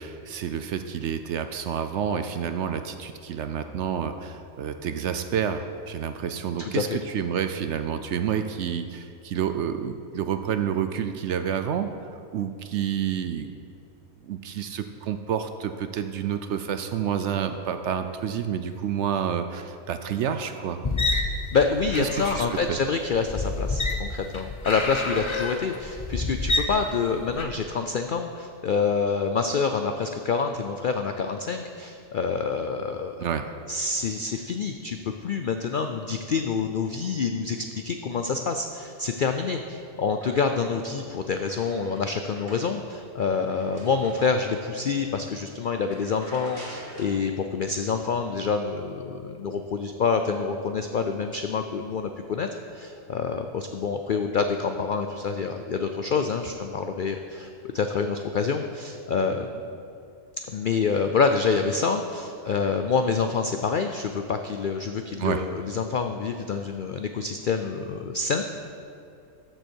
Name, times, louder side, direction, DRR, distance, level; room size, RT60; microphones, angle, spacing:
voice 1, 0.0-11.9 12.3-13.5 14.2-20.8 22.0-22.8 33.2-33.5 65.2-65.4, right 8 dB, 65° right, 8 dB, 0.7 m, -29 dB
voice 2, 6.6-7.0 21.5-33.3 33.7-52.5 52.7-59.5 60.5-68.4, left 5 dB, 80° left, 6 dB, 0.4 m, -27 dB
sound 1, 20.8-27.4, left 3 dB, 30° left, 0.5 m, -28 dB
sound 2, 39.7-40.8 41.2-44.8 45.3-45.4 45.8-47.2, right 1 dB, 35° right, 2.5 m, -47 dB
13.5 x 7.9 x 4.5 m, 2.5 s
omnidirectional pair, 1.5 m